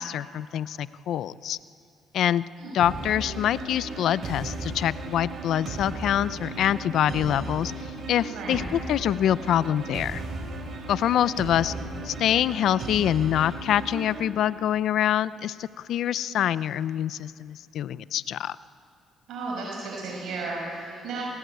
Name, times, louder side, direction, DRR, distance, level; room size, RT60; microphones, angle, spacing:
voice 1, 0.0-1.6 2.1-2.4 2.7-7.7 8.1-10.2 10.9-11.7 12.0-18.6, left 10 dB, 75° left, 17 dB, 0.6 m, -25 dB
sound 1, 2.8-14.2, right 2 dB, 55° right, 5.1 m, -36 dB
voice 2, 8.3-8.6 19.3-21.2, right 3 dB, 75° right, -3 dB, 6.2 m, -34 dB
28.0 x 19.5 x 9.3 m, 2.4 s
supercardioid pair, 70°, 0 cm